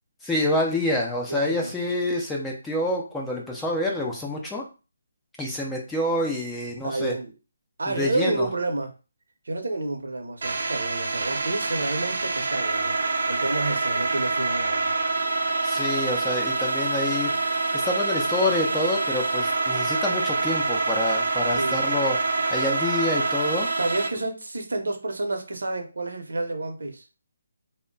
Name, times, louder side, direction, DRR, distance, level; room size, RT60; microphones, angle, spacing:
voice 1, 0.2-4.6 5.4-7.1 7.9-8.5 15.6-17.3 17.7-22.2 22.5-23.7, left 1 dB, 5° left, -2 dB, 0.4 m, -27 dB
voice 2, 1.3-1.7 6.8-7.3 7.8-8.9 9.4-13.0 13.3-14.9 21.5-21.8 23.8-27.0, right 2 dB, 85° right, 5 dB, 0.8 m, -29 dB
sound 1, 10.4-24.1, right 3 dB, 60° right, 0.5 m, -26 dB
2.1 x 2.1 x 3.7 m, 0.31 s
hypercardioid pair, 170°, 0 cm